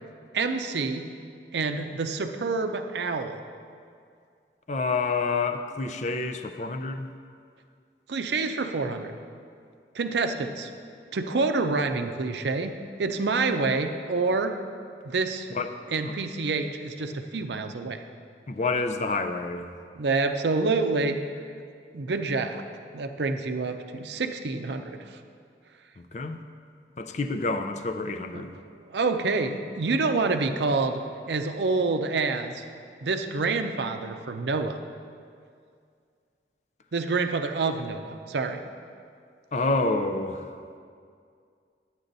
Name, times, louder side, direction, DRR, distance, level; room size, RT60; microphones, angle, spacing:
voice 1, 0.3-1.1 1.5-3.4 8.1-9.2 9.9-10.7 11.1-12.7 13.0-14.6 15.0-15.5 15.9-18.0 19.9-21.2 21.9-22.6 22.9-25.0 28.7-31.0 31.3-32.6 33.0-34.8 36.9-38.6, right 3 dB, 80° right, 7 dB, 0.6 m, -27 dB
voice 2, 4.7-7.1 15.5-15.7 16.0-16.1 18.5-19.7 26.0-26.4 27.0-28.6 39.5-40.5, left 3 dB, 40° left, 7 dB, 0.4 m, -28 dB
10.0 x 8.8 x 4.0 m, 2.3 s
head